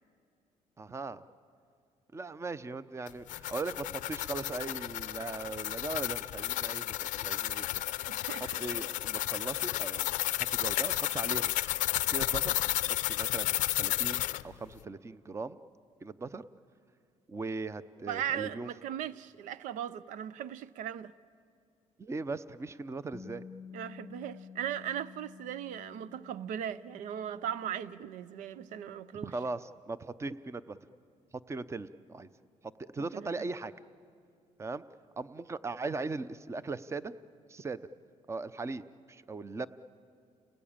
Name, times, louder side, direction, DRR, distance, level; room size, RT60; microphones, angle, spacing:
voice 1, 0.8-1.2 2.1-7.7 8.6-11.5 12.1-12.5 12.8-15.6 16.0-16.5 17.3-18.7 22.0-23.4 29.2-30.8 31.5-32.3 32.8-33.7 34.6-34.8 35.2-37.1 37.5-37.8 38.3-38.8 39.1-39.7, right 3 dB, 20° right, 0.7 m, -39 dB
sound 1, 3.1-14.4, left 15 dB, 80° left, 0.5 m, -32 dB
voice 2, 8.0-8.6 18.1-21.1 23.7-29.3 33.1-33.5, right 10 dB, 85° right, 0.5 m, -38 dB
Bass guitar, 23.1-29.4, left 6 dB, 10° left, 0.9 m, -52 dB
30.0 x 19.0 x 8.8 m
cardioid pair, 105°, 13 cm